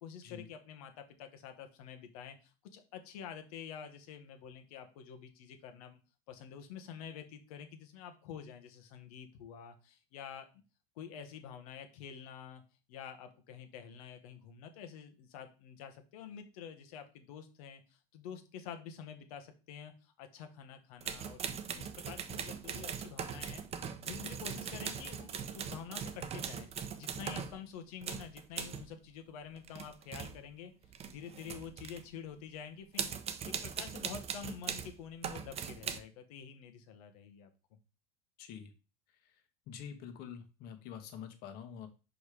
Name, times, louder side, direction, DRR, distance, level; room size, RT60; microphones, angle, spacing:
voice 1, 0.0-6.0 6.3-10.5 10.9-12.6 12.9-17.8 18.1-21.4 21.8-23.6 24.0-26.7 26.9-30.7 31.1-33.1 33.4-37.5, left 8 dB, 75° left, 7 dB, 1.5 m, -48 dB
sound 1, 21.0-27.6 28.0-28.9 29.6-30.5 30.8-32.1 33.0-34.9 35.2-36.0, right 7 dB, 35° right, 0.9 m, -40 dB
voice 2, 38.4-38.7 39.1-41.9, left 8 dB, 55° left, 7 dB, 1.6 m, -47 dB
5.3 x 5.2 x 5.0 m, 0.32 s
supercardioid pair, 105°, 19 cm